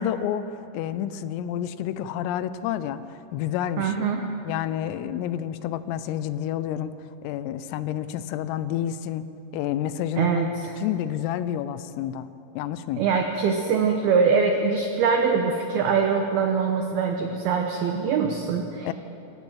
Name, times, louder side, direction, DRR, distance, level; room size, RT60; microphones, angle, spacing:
voice 1, 0.0-4.1 4.5-6.9 7.2-9.3 9.5-10.5 10.8-12.3 12.6-13.1 18.9-19.0, left 10 dB, 85° left, 13 dB, 3.3 m, -29 dB
voice 2, 3.8-4.2 10.2-10.7 13.0-18.9, right 5 dB, 85° right, 3 dB, 2.2 m, -23 dB
26.5 x 14.5 x 7.4 m, 2.9 s
omnidirectional pair, 6.0 m